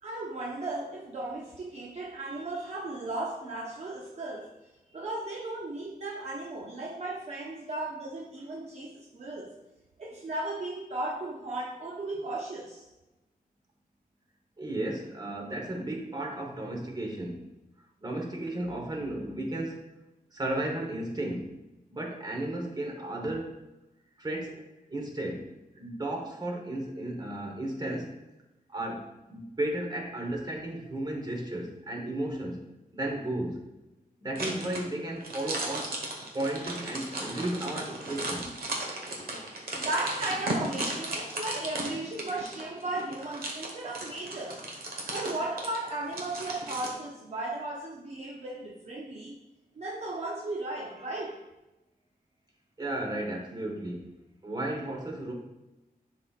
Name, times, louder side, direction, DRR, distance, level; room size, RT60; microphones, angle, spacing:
voice 1, 0.0-4.5 4.9-9.6 10.0-12.9 39.8-44.6 45.1-49.4 49.8-51.4, right 2 dB, 45° right, -1 dB, 0.6 m, -35 dB
voice 2, 14.6-17.4 18.0-19.8 20.3-21.5 21.9-23.5 24.2-24.6 24.9-25.5 25.8-28.1 28.7-32.6 32.9-33.6 34.2-36.0 36.3-38.6 52.8-54.1 54.4-55.3, right 1 dB, 25° right, 1 dB, 1.2 m, -34 dB
sound 1, 34.4-46.9, right 1 dB, 70° right, 1.3 m, -36 dB
10.5 x 4.2 x 2.4 m, 0.99 s
wide cardioid pair, 145°, 16 cm